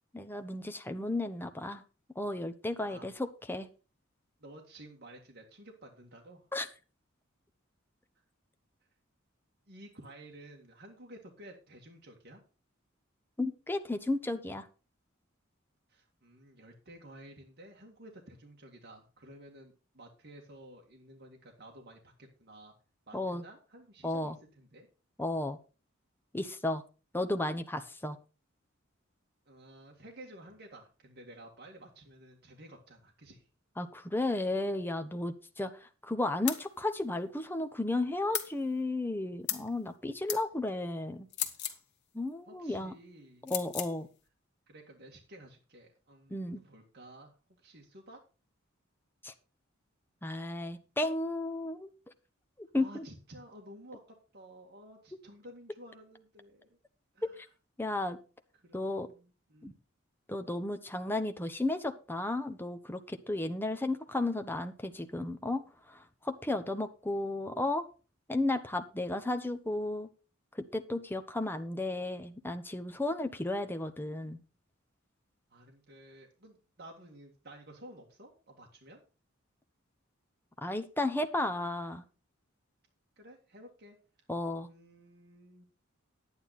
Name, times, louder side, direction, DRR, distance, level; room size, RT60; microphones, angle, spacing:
voice 1, 0.1-1.8 2.2-3.7 6.5-6.7 13.4-14.7 23.1-23.4 24.0-24.3 25.2-25.6 26.3-26.8 27.1-28.2 33.8-41.3 42.1-42.9 43.4-44.1 46.3-46.6 49.2-49.3 50.2-51.9 52.7-53.1 57.8-58.2 58.7-59.1 59.6-59.7 60.3-65.6 65.9-67.8 68.3-70.1 70.5-74.4 80.6-82.0 84.3-84.7, left 2 dB, 10° left, 7 dB, 0.9 m, -33 dB
voice 2, 4.4-6.4 9.7-12.4 15.9-22.7 23.1-24.9 29.5-33.5 42.5-43.5 44.7-47.3 47.6-48.2 52.8-54.0 54.3-56.8 57.1-57.4 58.5-59.8 75.5-79.0 83.2-84.0 84.7-85.7, right 1 dB, 55° right, 0 dB, 2.0 m, -53 dB
sound 1, 36.5-36.6 38.3-38.5 39.5-39.7 40.3-40.4 41.3-41.8 43.5-43.9, left 10 dB, 60° left, 1.6 m, -35 dB
10.5 x 9.4 x 4.2 m, 0.33 s
head